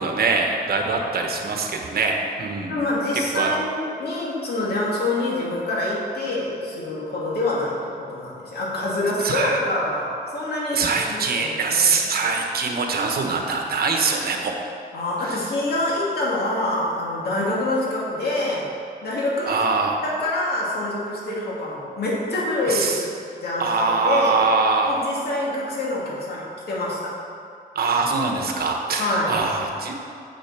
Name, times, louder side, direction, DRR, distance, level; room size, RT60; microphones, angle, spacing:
voice 1, 0.0-2.8 3.3-3.5 9.2-9.6 10.7-14.6 15.2-15.4 19.5-20.0 22.7-23.0 23.6-25.1 27.7-29.9, right 4 dB, 70° right, 2 dB, 1.2 m, -23 dB
voice 2, 2.7-10.8 11.1-11.9 14.9-18.7 19.0-19.6 20.0-23.0 23.4-24.4 24.9-27.1 29.0-29.4, left 2 dB, 75° left, -5 dB, 2.4 m, -26 dB
7.6 x 6.9 x 6.0 m, 2.5 s
cardioid pair, 110°, 16 cm